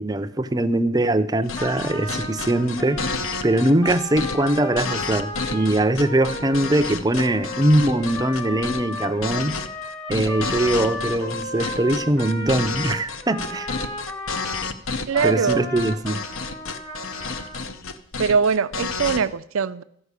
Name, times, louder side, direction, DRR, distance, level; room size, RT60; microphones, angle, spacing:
voice 1, 0.0-9.6 10.1-13.7 15.2-16.2, right 1 dB, 20° right, 0.5 m, -22 dB
sound 1, 1.5-19.2, left 4 dB, 65° left, 0.8 m, -30 dB
Trumpet, 1.6-14.7 15.1-17.6, left 2 dB, 20° left, 1.0 m, -34 dB
voice 2, 15.1-15.7 18.2-19.8, right 5 dB, 65° right, 0.5 m, -22 dB
13.5 x 5.5 x 8.2 m
head